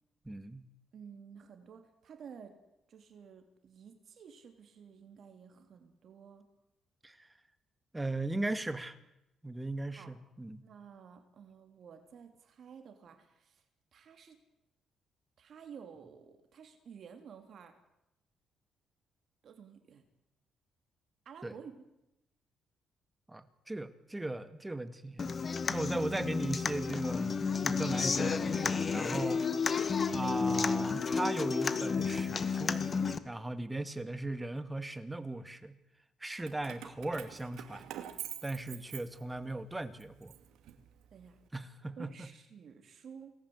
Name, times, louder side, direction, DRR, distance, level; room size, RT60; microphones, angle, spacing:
voice 1, 0.3-0.7 7.0-7.3 7.9-9.0 9.4-10.6 21.4-21.5 23.3-25.3 25.7-27.4 27.6-29.8 30.1-32.8 33.2-35.8 36.2-37.9 38.4-40.3 41.5-42.3, right 2 dB, 15° right, 11 dB, 2.1 m, -38 dB
voice 2, 0.9-2.6 2.9-6.4 9.9-10.1 10.6-13.6 13.9-14.4 15.4-17.7 19.4-20.0 21.3-21.7 29.3-29.5 29.8-30.0 41.1-41.4 42.0-43.3, right 7 dB, 60° right, 6 dB, 3.6 m, -52 dB
Human voice / Acoustic guitar, 25.2-33.2, left 5 dB, 40° left, 1.9 m, -31 dB
Keys jangling, 36.4-39.6 40.0-41.3, right 11 dB, 85° right, 2.6 m, -46 dB
28.0 x 20.0 x 8.2 m, 0.88 s
cardioid pair, 90°, 0 cm